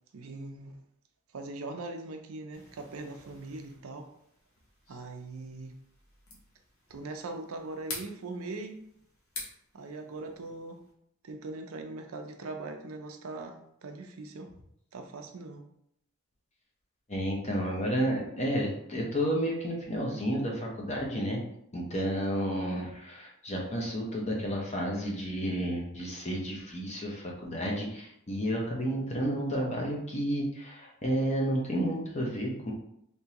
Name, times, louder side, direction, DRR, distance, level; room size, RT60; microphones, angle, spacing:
voice 1, 0.1-0.8 1.3-4.1 4.9-5.8 6.9-8.7 9.7-10.8 11.2-14.5 14.9-15.7, right 2 dB, 80° right, 5 dB, 0.5 m, -41 dB
sound 1, 2.5-10.9, left 3 dB, 85° left, 0.9 m, -48 dB
voice 2, 17.1-21.4 21.7-32.7, equal, 30° left, -1 dB, 0.7 m, -31 dB
3.6 x 2.7 x 2.9 m, 0.73 s
head